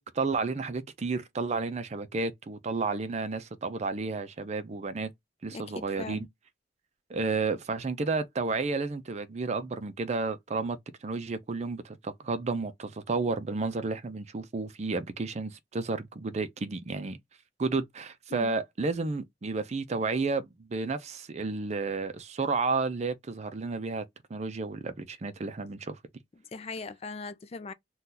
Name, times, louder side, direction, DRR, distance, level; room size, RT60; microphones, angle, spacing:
voice 1, 0.0-5.1 5.4-6.3 7.1-17.2 17.6-24.0 24.3-26.0, right 3 dB, 40° right, 0.4 m, -32 dB
voice 2, 5.5-6.3 18.3-18.5 26.5-27.7, left 3 dB, 35° left, 0.4 m, -39 dB
2.8 x 2.3 x 3.7 m
head